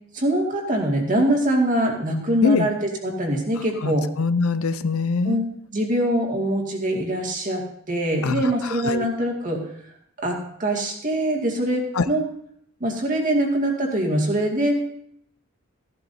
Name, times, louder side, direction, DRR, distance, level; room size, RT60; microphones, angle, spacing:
voice 1, 0.1-4.1 5.2-5.4 5.7-9.6 10.2-12.2 12.8-14.8, right 1 dB, 35° right, 0 dB, 2.2 m, -23 dB
voice 2, 3.8-5.4 8.2-8.4 8.9-9.0 12.0-12.1, left 4 dB, 75° left, 13 dB, 0.6 m, -22 dB
15.5 x 11.5 x 2.7 m, 0.68 s
head